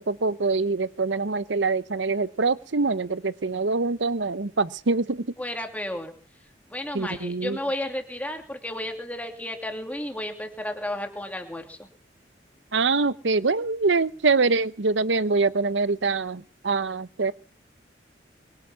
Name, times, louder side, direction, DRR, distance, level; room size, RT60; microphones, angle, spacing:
voice 1, 0.0-5.3 6.9-7.6 12.7-17.3, right 3 dB, 85° right, 16 dB, 0.9 m, -24 dB
voice 2, 5.4-6.1 6.7-11.9, left 1 dB, 10° left, 4 dB, 2.7 m, -33 dB
22.5 x 9.9 x 6.2 m, 0.43 s
head